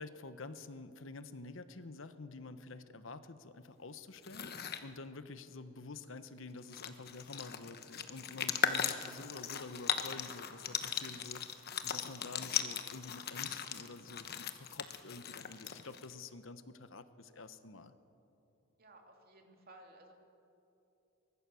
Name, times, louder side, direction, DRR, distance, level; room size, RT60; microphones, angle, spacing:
voice 1, 0.0-4.5 4.8-11.4 11.8-17.9, left 3 dB, 70° left, 11 dB, 1.0 m, -48 dB
sound 1, 4.2-4.8 6.3-6.4 6.6-16.1, left 8 dB, 50° left, 1.1 m, -38 dB
voice 2, 18.8-20.1, right 2 dB, 45° right, 2 dB, 2.8 m, -57 dB
24.0 x 20.5 x 7.0 m, 2.9 s
head